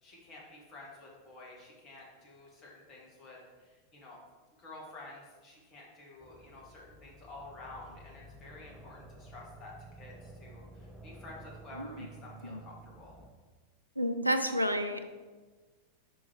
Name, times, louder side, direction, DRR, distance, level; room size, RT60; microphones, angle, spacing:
voice 1, 0.0-4.2 4.6-13.1, left 2 dB, 35° left, -3 dB, 1.7 m, -51 dB
sound 1, 6.2-13.3, right 2 dB, 5° left, 0.9 m, -52 dB
voice 2, 14.0-15.1, equal, 90° right, 7 dB, 0.5 m, -30 dB
5.3 x 4.6 x 4.4 m, 1.3 s
figure-of-eight pair, 90°, 0 cm